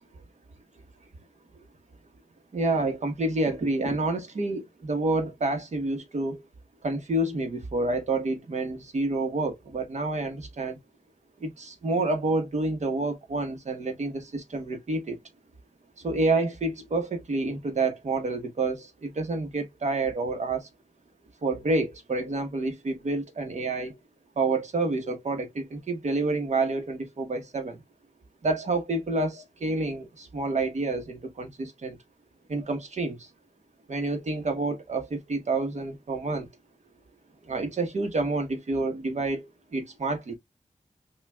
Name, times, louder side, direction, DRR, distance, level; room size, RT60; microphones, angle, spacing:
voice 1, 2.5-6.4 6.8-10.8 11.4-15.2 16.0-20.7 21.4-24.0 24.4-27.8 28.4-32.0 32.5-33.3 33.9-36.5 37.5-40.3, right 2 dB, 70° right, 1.1 m, -28 dB
5.7 x 2.4 x 2.3 m
wide cardioid pair, 105°, 12 cm